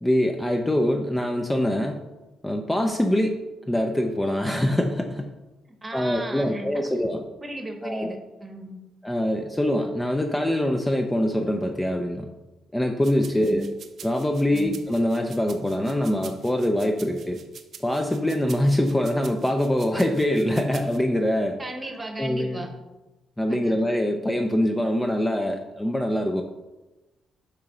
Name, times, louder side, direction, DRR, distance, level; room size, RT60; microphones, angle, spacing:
voice 1, 0.0-2.0 2.4-3.4 3.7-5.3 5.9-7.2 7.8-8.1 9.0-12.3 12.7-13.6 14.0-17.4 17.8-21.6 22.2-22.7 23.4-26.4, left 1 dB, 10° left, 4 dB, 0.4 m, -24 dB
voice 2, 5.8-6.8 7.4-8.8 13.4-13.7 14.5-14.9 21.6-22.7 23.5-23.8, right 1 dB, 20° right, 5 dB, 1.0 m, -35 dB
sound 1, 13.0-21.0, right 7 dB, 60° right, 0.5 m, -46 dB
6.6 x 2.9 x 5.1 m, 1.1 s
cardioid pair, 90°, 0 cm